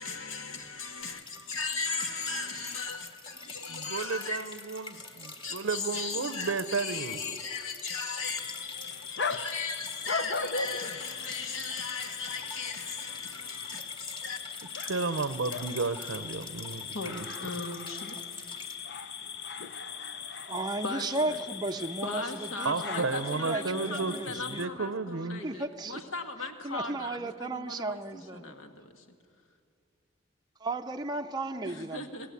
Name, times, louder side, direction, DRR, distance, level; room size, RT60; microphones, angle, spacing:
voice 1, 0.0-4.4 4.7-14.4 16.0-16.2 16.9-18.2 20.8-21.4 22.0-29.2 31.6-32.3, left 4 dB, 70° left, 1.9 m, -38 dB
sound 1, 1.0-18.8, left 3 dB, 25° left, 1.8 m, -47 dB
voice 2, 3.7-7.4 14.8-17.2 22.6-25.4, right 4 dB, 70° right, 0.7 m, -33 dB
sound 2, 8.2-24.7, left 5 dB, 55° left, 0.9 m, -39 dB
voice 3, 20.5-24.6 25.4-26.0 26.6-28.5 30.6-32.1, right 2 dB, 20° right, 0.5 m, -35 dB
27.0 x 17.5 x 8.3 m
head